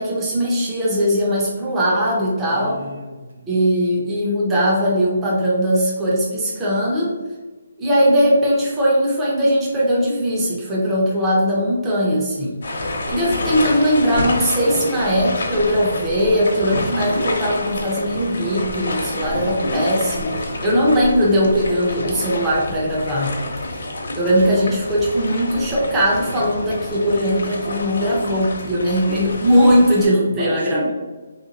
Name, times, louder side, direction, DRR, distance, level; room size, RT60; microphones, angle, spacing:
voice 1, 0.0-2.8 3.5-7.1 7.8-23.4 23.7-23.8 24.1-30.8, equal, 10° right, -6 dB, 0.5 m, -19 dB
voice 2, 2.5-3.6 30.3-30.9, right 1 dB, 70° right, 2 dB, 0.8 m, -31 dB
sound 1, 12.6-30.1, left 1 dB, 60° left, 0.8 m, -28 dB
3.0 x 2.8 x 3.8 m, 1.3 s
hypercardioid pair, 175°, 0 cm